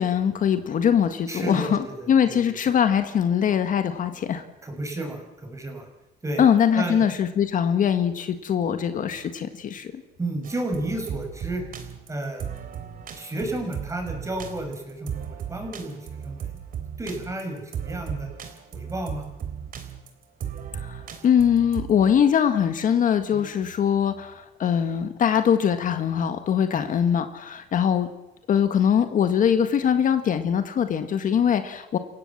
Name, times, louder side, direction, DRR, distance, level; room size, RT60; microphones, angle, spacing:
voice 1, 0.0-1.8 2.1-4.4 6.4-10.0 20.7-28.1 28.5-32.0, left 8 dB, 50° left, 8 dB, 1.7 m, -22 dB
voice 2, 1.3-2.7 4.6-5.9 6.2-6.4 6.7-7.0 10.2-11.6 12.1-12.4 13.2-16.6 17.0-18.3 18.7-19.3 23.3-23.5 26.7-26.9, right 1 dB, 15° right, 3 dB, 6.1 m, -32 dB
sound 1, 10.4-22.0, right 8 dB, 55° right, 3.6 m, -36 dB
28.5 x 16.5 x 7.4 m, 0.99 s
cardioid pair, 110°, 17 cm